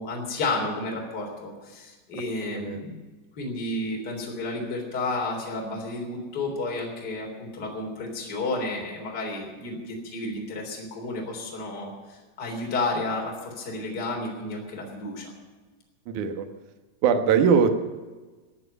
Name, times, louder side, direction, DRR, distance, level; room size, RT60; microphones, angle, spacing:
voice 1, 0.0-3.0 3.4-15.3, left 2 dB, 25° left, 0 dB, 3.3 m, -31 dB
voice 2, 2.5-2.8 16.1-16.5 17.0-17.7, right 6 dB, 80° right, 6 dB, 1.7 m, -21 dB
15.5 x 8.6 x 9.9 m, 1.3 s
omnidirectional pair, 5.4 m